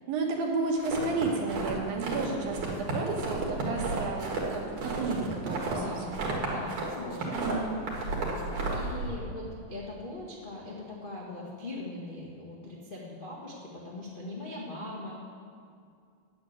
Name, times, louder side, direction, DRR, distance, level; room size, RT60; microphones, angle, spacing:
voice 1, 0.1-5.8 6.1-6.2 7.4-7.8, right 3 dB, 85° right, 0 dB, 3.2 m, -32 dB
sound 1, 0.8-2.3 2.5-6.9 7.1-9.1, right 3 dB, 65° right, 3.4 m, -32 dB
voice 2, 5.6-7.6 7.9-15.2, left 2 dB, 65° left, -6 dB, 0.5 m, -41 dB
10.0 x 7.3 x 9.5 m, 2.3 s
omnidirectional pair, 4.0 m